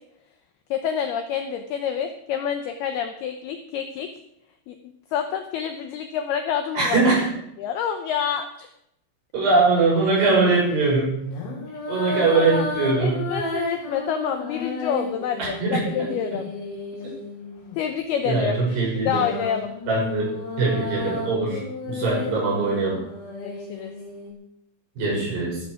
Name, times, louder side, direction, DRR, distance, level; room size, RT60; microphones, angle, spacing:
voice 1, 0.7-4.1 4.7-4.8 5.1-7.0 7.6-8.7 12.1-12.6 13.0-16.5 17.8-18.5 19.1-19.7 23.4-23.9, left 8 dB, 85° left, 7 dB, 2.3 m, -28 dB
voice 2, 6.8-7.3 9.3-11.3 11.9-13.3 15.4-16.1 18.2-19.2 19.9-21.6 21.9-23.0 25.0-25.6, right 3 dB, 55° right, -4 dB, 8.8 m, -22 dB
sound 1, 9.5-9.8 11.2-17.8 18.7-24.3, left 2 dB, 60° left, 5.8 m, -33 dB
13.5 x 13.0 x 5.1 m, 0.77 s
omnidirectional pair, 5.6 m